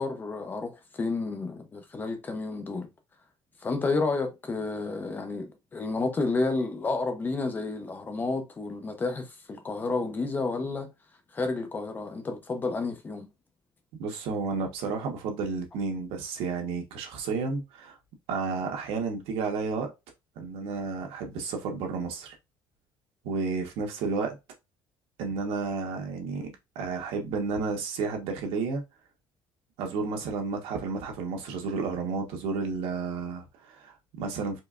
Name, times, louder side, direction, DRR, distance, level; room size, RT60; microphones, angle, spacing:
voice 1, 0.0-2.9 3.6-10.9 11.3-13.3, left 3 dB, 20° left, 0.7 m, -30 dB
voice 2, 14.0-18.0 18.3-19.9 20.4-22.3 23.2-24.4 25.2-28.8 29.8-34.6, right 4 dB, 75° right, 1.3 m, -32 dB
4.4 x 3.2 x 2.5 m
cardioid pair, 170°, 10 cm